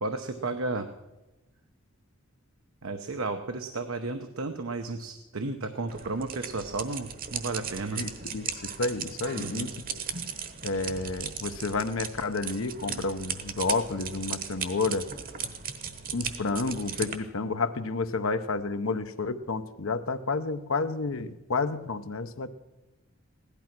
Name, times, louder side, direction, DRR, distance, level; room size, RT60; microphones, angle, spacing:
voice 1, 0.0-0.9 2.8-8.0 9.3-9.7, right 3 dB, 75° right, 6 dB, 0.9 m, -33 dB
sound 1, 5.9-17.2, right 7 dB, 40° right, 1.1 m, -37 dB
voice 2, 7.9-10.0 10.6-15.1 16.1-22.5, left 3 dB, 75° left, 9 dB, 0.8 m, -30 dB
16.5 x 12.0 x 6.0 m, 1.0 s
head